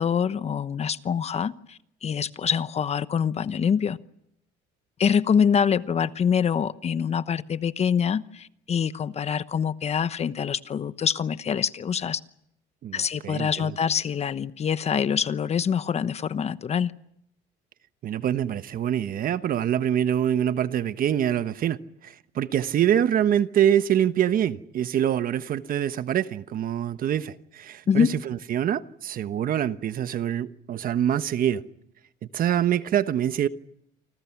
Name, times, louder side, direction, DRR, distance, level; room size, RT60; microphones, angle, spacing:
voice 1, 0.0-4.0 5.0-12.2 12.9-16.9 27.9-28.1, left 7 dB, 35° left, 1.0 m, -25 dB
voice 2, 12.8-13.7 18.0-21.8 22.0-31.6 32.3-33.5, right 10 dB, 50° right, 1.2 m, -25 dB
29.0 x 25.5 x 6.0 m
cardioid pair, 115°, 19 cm